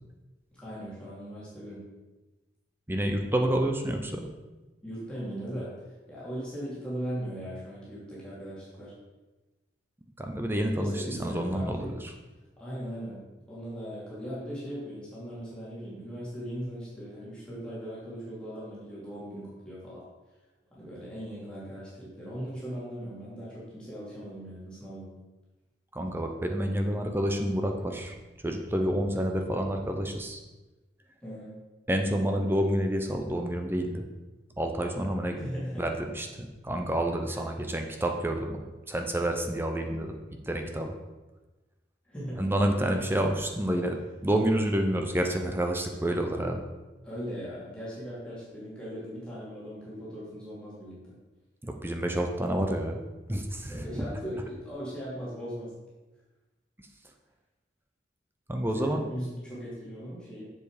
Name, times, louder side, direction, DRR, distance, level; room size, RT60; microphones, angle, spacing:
voice 1, 0.5-1.9 4.8-5.7 6.1-8.9 10.7-12.0 12.6-20.0 20.7-25.1 31.2-31.6 35.4-35.9 37.3-37.4 42.0-42.4 47.0-51.2 53.7-55.7 58.8-60.4, equal, 5° left, -9 dB, 2.8 m, -39 dB
voice 2, 2.9-4.3 10.2-12.1 25.9-28.1 28.4-30.4 31.9-34.0 34.6-35.4 35.8-38.6 38.9-40.1 40.4-40.9 42.4-46.6 51.6-53.0 53.3-54.0 58.5-59.0, right 1 dB, 10° right, 4 dB, 0.7 m, -29 dB
7.4 x 7.2 x 4.9 m, 1.1 s
head